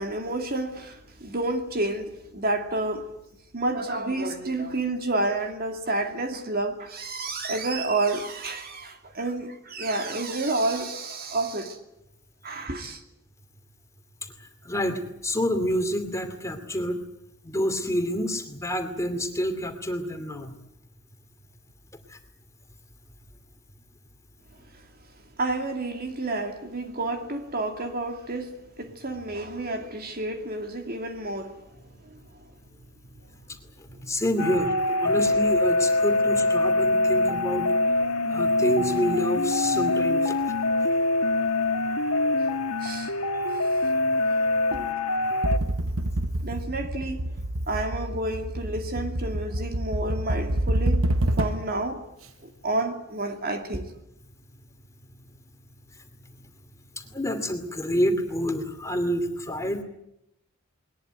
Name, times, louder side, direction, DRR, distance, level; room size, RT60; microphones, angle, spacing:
voice 1, 0.0-3.1 3.5-11.8 12.4-13.0 25.4-31.6 32.1-32.4 42.8-43.1 44.7-44.9 46.4-47.2 47.7-51.1 51.4-52.0 52.4-53.8, right 2 dB, 45° right, 2.5 m, -30 dB
voice 2, 14.6-17.0 17.4-20.5 22.1-22.2 34.0-37.7 38.3-40.5 43.8-44.0 57.0-59.8, equal, 15° left, 2.5 m, -28 dB
sound 1, 34.4-45.6, left 2 dB, 85° left, 1.7 m, -24 dB
sound 2, 45.4-51.8, right 1 dB, 70° right, 1.1 m, -27 dB
21.0 x 20.0 x 9.0 m
head